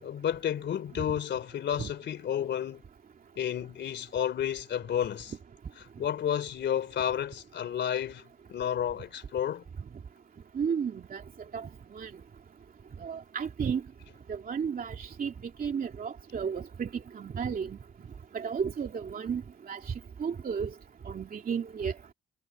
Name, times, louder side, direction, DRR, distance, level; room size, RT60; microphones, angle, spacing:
voice 1, 0.0-2.8 3.4-5.3 6.0-8.2 8.5-9.6, left 9 dB, 65° left, 3.3 m, -31 dB
voice 2, 10.5-11.2 11.5-11.7 12.0-12.1 13.0-13.8 14.3-15.3 15.6-16.9 17.1-17.8 18.3-19.4 19.7-19.8 20.2-20.7 21.1-21.9, right 6 dB, 45° right, 2.8 m, -33 dB
cardioid pair, 90°, 20 cm